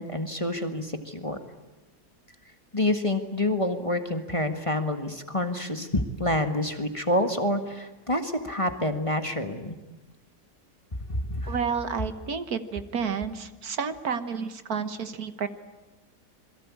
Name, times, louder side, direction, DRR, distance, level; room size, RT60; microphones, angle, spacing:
voice 1, 0.0-1.4 2.7-9.8 11.1-11.6, left 1 dB, 20° left, 7 dB, 1.7 m, -28 dB
voice 2, 11.5-15.5, right 6 dB, 65° right, 11 dB, 1.7 m, -30 dB
27.5 x 22.5 x 8.6 m, 1.1 s
omnidirectional pair, 1.8 m